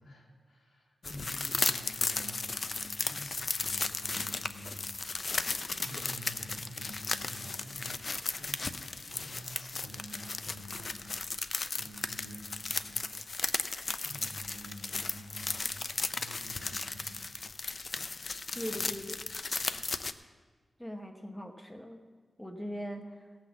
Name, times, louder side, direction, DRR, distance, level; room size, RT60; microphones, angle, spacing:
voice 1, 0.0-17.3 18.7-19.0 19.6-19.8, equal, 80° left, -1 dB, 2.5 m, -49 dB
sound 1, 1.0-20.1, left 3 dB, 50° left, 0.5 m, -35 dB
voice 2, 18.5-19.2 20.8-22.0 22.4-23.3, equal, 5° left, 4 dB, 0.9 m, -40 dB
16.5 x 6.1 x 7.2 m, 1.5 s
wide cardioid pair, 100°, 0 cm